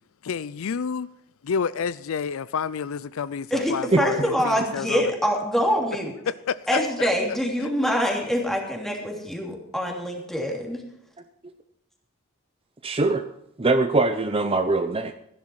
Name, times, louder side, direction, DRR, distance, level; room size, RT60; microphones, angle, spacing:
voice 1, 0.2-1.1 1.4-5.1 6.3-7.1 7.6-7.7, left 6 dB, 65° left, 0.4 m, -29 dB
voice 2, 3.5-6.1 6.7-10.8, equal, ahead, 3.0 m, -25 dB
voice 3, 12.8-13.2 13.6-15.1, right 3 dB, 25° right, 0.7 m, -22 dB
15.0 x 11.0 x 4.7 m
head